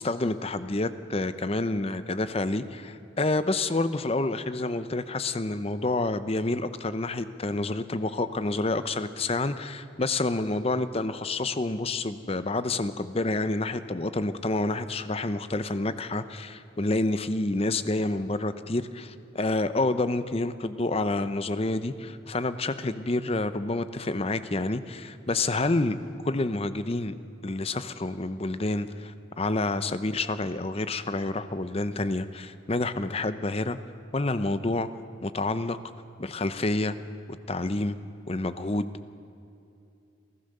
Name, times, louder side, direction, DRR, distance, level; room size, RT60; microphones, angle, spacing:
voice 1, 0.0-26.0 26.2-27.1 27.4-33.8 34.1-34.9 35.2-35.8 36.2-37.0 37.5-38.0 38.3-38.9, left 2 dB, 30° left, 12 dB, 0.7 m, -28 dB
28.0 x 15.5 x 6.7 m, 2.7 s
head